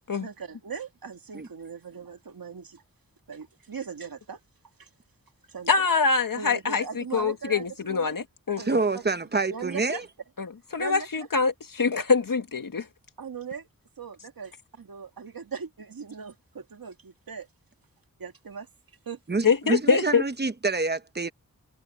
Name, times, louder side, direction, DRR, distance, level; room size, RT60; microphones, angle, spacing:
voice 1, 0.2-2.8 3.3-4.4 4.8-4.9 5.5-5.9 6.3-8.2 8.6-9.0 9.5-10.1 10.8-11.3 13.2-13.7 14.0-17.5 18.2-18.7 19.1-19.2, right 6 dB, 85° right, 2.2 m, -39 dB
voice 2, 5.7-6.8 7.1-8.6 10.4-10.5 10.7-12.9 19.4-20.2, left 5 dB, 70° left, 1.8 m, -24 dB
voice 3, 8.6-10.0 19.3-21.3, right 3 dB, 30° right, 1.0 m, -27 dB
wide cardioid pair, 75°, 34 cm